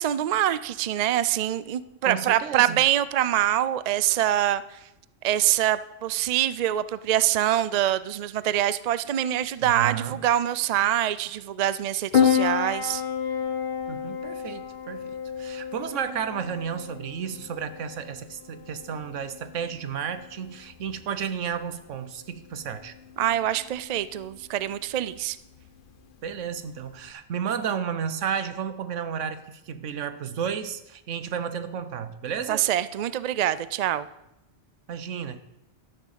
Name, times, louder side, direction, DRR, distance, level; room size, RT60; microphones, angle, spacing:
voice 1, 0.0-4.8 5.2-13.0 23.2-25.4 32.5-34.1, right 12 dB, 65° right, 16 dB, 0.4 m, -25 dB
voice 2, 2.0-2.8 9.6-10.2 13.9-15.1 15.4-22.9 26.2-32.6 34.9-35.4, right 7 dB, 80° right, 12 dB, 1.2 m, -32 dB
Piano, 12.1-27.1, left 8 dB, 50° left, 1.0 m, -31 dB
12.0 x 6.3 x 7.5 m, 0.89 s
omnidirectional pair, 1.3 m